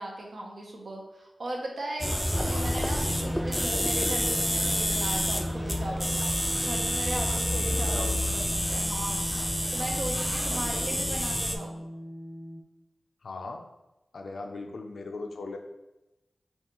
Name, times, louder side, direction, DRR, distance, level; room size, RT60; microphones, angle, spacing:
voice 1, 0.0-6.2 6.6-8.1 8.3-9.4 9.7-11.8, right 1 dB, 75° right, -1 dB, 0.9 m, -37 dB
sound 1, 2.0-11.6, equal, ahead, 0.4 m, -29 dB
sound 2, 2.3-12.6, equal, 30° right, 1.1 m, -37 dB
voice 2, 7.8-8.2 10.5-11.0 13.2-13.7 14.1-15.6, left 3 dB, 85° left, 4 dB, 0.5 m, -39 dB
5.3 x 2.4 x 3.0 m, 0.96 s
cardioid pair, 55°, 0 cm